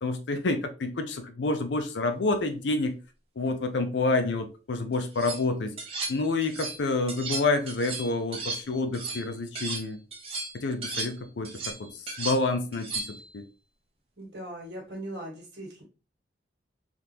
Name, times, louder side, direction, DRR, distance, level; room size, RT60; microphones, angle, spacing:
voice 1, 0.0-2.9 3.4-5.7 6.1-10.0 10.5-11.5 11.8-11.9 12.2-13.4, left 3 dB, 90° left, 7 dB, 0.5 m, -28 dB
sound 1, 4.9-5.4 5.8-6.8 7.1-9.8 10.1-13.3, right 3 dB, 35° right, 0.8 m, -35 dB
voice 2, 14.2-15.8, right 1 dB, 80° right, -5 dB, 1.4 m, -39 dB
3.5 x 2.5 x 2.8 m, 0.33 s
head